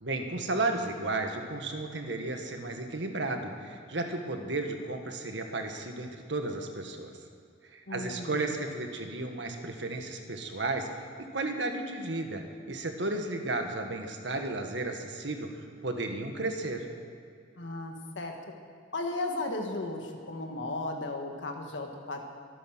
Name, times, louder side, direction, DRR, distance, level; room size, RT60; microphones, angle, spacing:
voice 1, 0.0-7.1 7.7-12.4 12.7-16.9, right 2 dB, 75° right, 4 dB, 1.8 m, -33 dB
voice 2, 7.9-8.6 17.6-18.4 18.9-22.2, left 2 dB, 85° left, 3 dB, 1.7 m, -35 dB
23.5 x 9.7 x 6.3 m, 2.3 s
head